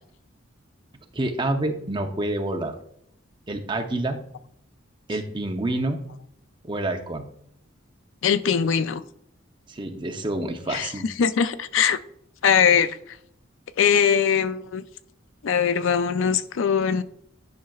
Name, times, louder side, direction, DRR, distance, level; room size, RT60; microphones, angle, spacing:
voice 1, 1.1-2.8 3.5-4.2 5.1-6.0 6.6-7.2 9.7-11.1, right 2 dB, 25° right, 0.7 m, -28 dB
voice 2, 8.2-9.0 10.7-12.0 12.4-13.2 13.8-14.8 15.4-17.0, left 7 dB, 75° left, 0.4 m, -21 dB
10.5 x 5.6 x 2.4 m
head